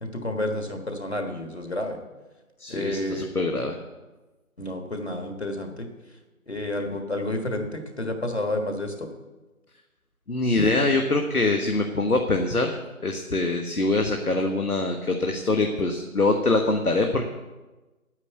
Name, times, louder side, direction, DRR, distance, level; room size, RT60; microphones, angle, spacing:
voice 1, 0.0-2.0 2.7-3.3 4.6-5.9 6.5-9.1, left 1 dB, 45° left, 5 dB, 1.6 m, -30 dB
voice 2, 2.6-3.8 10.3-12.8 13.0-17.3, left 2 dB, 85° left, 4 dB, 1.4 m, -24 dB
9.6 x 7.8 x 8.3 m, 1.2 s
figure-of-eight pair, 175°, 43 cm